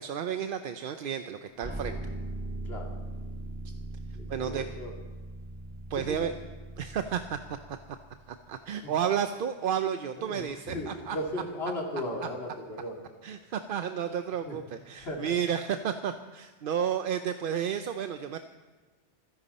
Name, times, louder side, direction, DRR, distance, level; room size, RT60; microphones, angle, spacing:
voice 1, 0.0-2.0 4.3-4.6 5.9-6.3 6.8-7.4 8.3-11.2 13.2-18.4, right 8 dB, 60° right, 8 dB, 0.7 m, -32 dB
sound 1, 1.6-8.5, right 2 dB, 10° right, 1.7 m, -40 dB
voice 2, 2.6-3.0 4.1-4.9 5.9-6.3 8.8-8.9 10.2-13.0 14.4-14.6 15.0-15.4, left 1 dB, 60° left, 0 dB, 2.6 m, -37 dB
25.5 x 11.0 x 4.2 m, 1.4 s
omnidirectional pair, 1.2 m